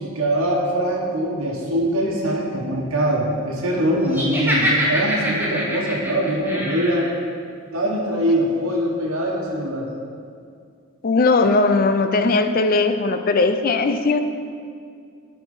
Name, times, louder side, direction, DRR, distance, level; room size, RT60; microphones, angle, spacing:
voice 1, 0.0-7.1 7.7-9.9, equal, 80° right, -4 dB, 1.4 m, -22 dB
Laughter, 4.1-7.1, equal, 10° right, 1.1 m, -24 dB
voice 2, 11.0-14.2, left 3 dB, 45° left, 8 dB, 0.5 m, -18 dB
9.8 x 4.7 x 5.5 m, 2.3 s
head